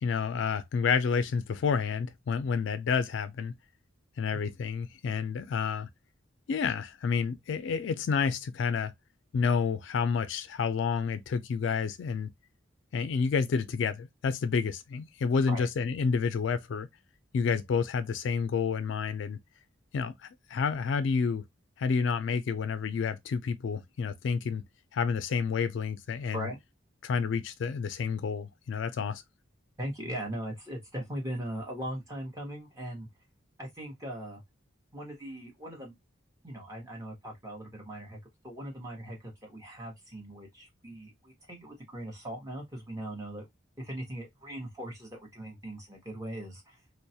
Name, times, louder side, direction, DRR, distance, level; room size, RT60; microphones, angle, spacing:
voice 1, 0.0-3.6 4.2-5.9 6.5-8.9 9.3-12.3 12.9-16.9 17.3-19.4 19.9-21.5 21.8-24.6 24.9-26.5 27.0-29.2, left 5 dB, 70° left, 0.3 m, -29 dB
voice 2, 29.8-33.1 33.6-34.4 34.9-35.9 36.4-38.2 38.4-43.5 43.8-46.8, right 1 dB, 15° right, 0.9 m, -39 dB
2.3 x 2.0 x 2.6 m
head